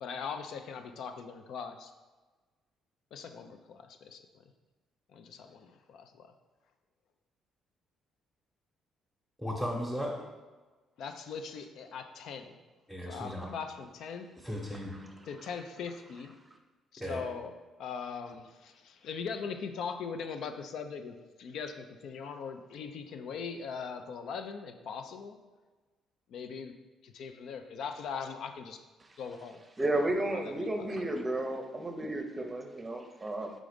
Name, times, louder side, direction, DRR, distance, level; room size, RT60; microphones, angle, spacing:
voice 1, 0.0-1.9 3.1-4.2 5.1-6.3 11.0-12.6 13.1-14.4 15.3-16.4 16.9-17.5 17.8-25.4 26.3-26.7 27.0-28.8 29.2-29.6 30.3-30.9, left 6 dB, 70° left, 7 dB, 0.4 m, -40 dB
voice 2, 9.4-10.1 12.9-13.5 14.4-14.9 17.0-17.2, equal, 5° left, -3 dB, 1.0 m, -35 dB
voice 3, 29.8-33.5, right 1 dB, 20° right, 4 dB, 0.7 m, -32 dB
5.0 x 3.8 x 5.0 m, 1.3 s
cardioid pair, 115°, 0 cm